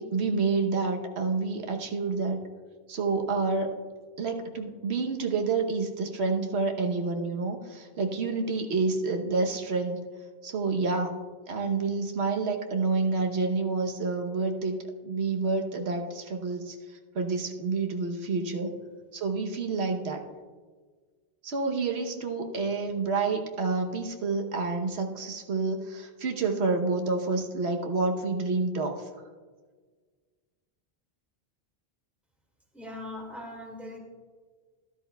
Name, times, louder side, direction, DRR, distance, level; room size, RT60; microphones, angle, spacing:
voice 1, 0.0-2.4 2.9-3.7 4.2-10.0 10.4-11.1 11.5-14.8 15.0-18.7 19.1-20.2 21.4-29.1, right 4 dB, 90° right, 3 dB, 1.2 m, -28 dB
voice 2, 32.7-34.0, left 1 dB, ahead, -1 dB, 2.0 m, -40 dB
13.0 x 13.0 x 2.3 m, 1.5 s
omnidirectional pair, 1.1 m